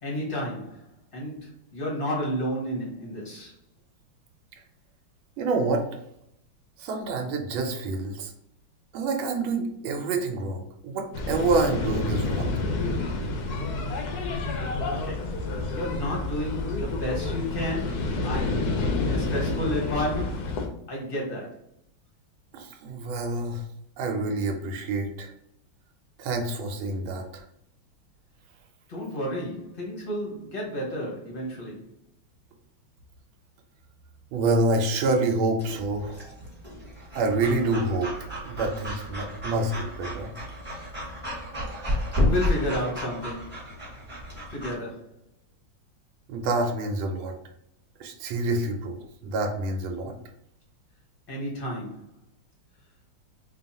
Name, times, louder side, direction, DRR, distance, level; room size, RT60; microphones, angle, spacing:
voice 1, 0.0-3.5 14.9-15.3 15.7-20.6 20.9-21.6 28.9-31.8 42.2-43.7 44.5-45.1 51.3-52.1, equal, 45° left, -3 dB, 0.7 m, -32 dB
voice 2, 5.4-5.8 6.8-8.3 8.9-12.5 22.5-23.7 24.0-25.3 26.2-27.4 34.3-36.4 37.1-38.1 38.4-40.3 41.7-42.0 46.3-47.3 48.0-49.0 49.2-50.1, right 2 dB, 80° right, 2 dB, 1.4 m, -27 dB
sound 1, 11.1-20.7, left 3 dB, 75° left, 0.9 m, -29 dB
Breathing / Dog, 35.6-44.7, left 1 dB, 10° right, 0.8 m, -32 dB
3.4 x 2.3 x 4.0 m, 0.74 s
omnidirectional pair, 2.2 m